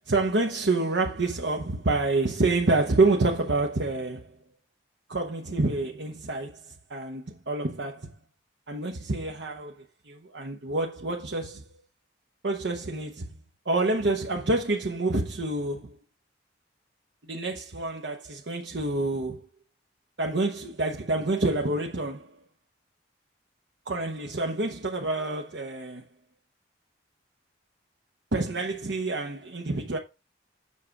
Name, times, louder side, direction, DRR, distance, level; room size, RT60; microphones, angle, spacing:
voice 1, 0.1-4.4 5.1-8.1 8.7-11.7 12.4-13.3 13.6-16.0 17.3-19.4 20.2-22.4 23.9-26.1 28.3-30.0, right 2 dB, 70° right, 1.0 m, -27 dB
7.5 x 5.9 x 4.8 m
head